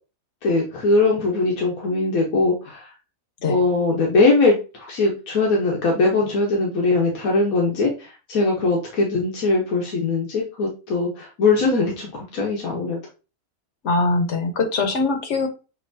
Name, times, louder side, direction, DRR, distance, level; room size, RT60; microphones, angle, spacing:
voice 1, 0.4-2.9 3.5-13.0, left 3 dB, 85° left, 1.4 m, -21 dB
voice 2, 13.8-15.5, left 3 dB, 60° left, 1.2 m, -22 dB
6.8 x 2.9 x 2.6 m
omnidirectional pair, 1.4 m